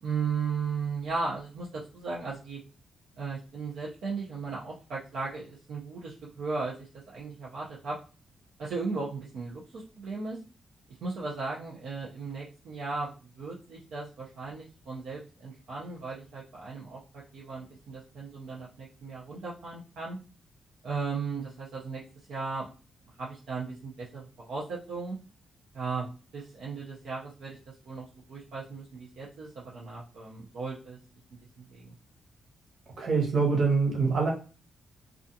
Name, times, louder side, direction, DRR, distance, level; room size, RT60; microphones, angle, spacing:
voice 1, 0.0-2.6 3.2-8.0 8.6-10.4 11.0-20.2 20.8-22.0 22.3-22.7 23.2-25.2 25.7-26.1 26.3-27.6 27.8-31.0 31.6-31.9, right 4 dB, 80° right, 0.6 m, -36 dB
voice 2, 33.0-34.3, right 4 dB, 55° right, 1.0 m, -24 dB
2.4 x 2.4 x 2.6 m
wide cardioid pair, 135°, 0 cm